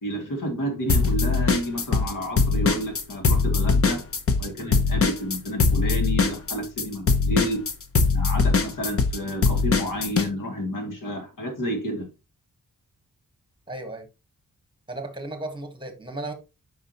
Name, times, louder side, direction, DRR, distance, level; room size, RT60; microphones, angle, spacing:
voice 1, 0.0-4.1 4.4-7.7 8.1-12.1, equal, 70° left, 2.4 m, -30 dB
sound 1, 0.9-2.1 2.4-10.3, left 4 dB, 45° left, 0.8 m, -21 dB
voice 2, 13.7-14.1 14.9-16.3, right 2 dB, 15° right, 1.4 m, -35 dB
8.5 x 5.5 x 2.9 m
wide cardioid pair, 180°, 33 cm